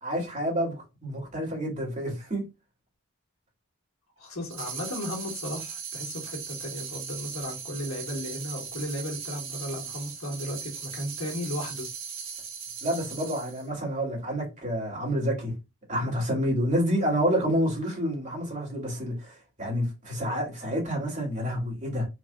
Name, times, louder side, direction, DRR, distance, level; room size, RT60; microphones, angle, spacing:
voice 1, 0.0-2.5 12.8-15.5 15.9-22.1, equal, 35° right, 2.2 m, -28 dB
voice 2, 4.2-11.9, left 1 dB, 80° left, 1.8 m, -35 dB
sound 1, 4.5-13.7, right 6 dB, 65° right, 1.7 m, -38 dB
4.8 x 2.8 x 2.3 m
head